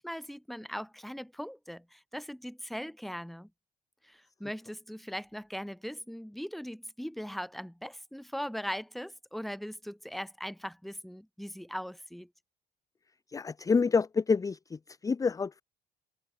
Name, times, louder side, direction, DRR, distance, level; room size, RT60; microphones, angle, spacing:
voice 1, 0.0-3.5 4.0-12.3, equal, ahead, 1.4 m, -40 dB
voice 2, 13.3-15.6, left 5 dB, 20° left, 0.6 m, -28 dB
cardioid pair, 110°, 17 cm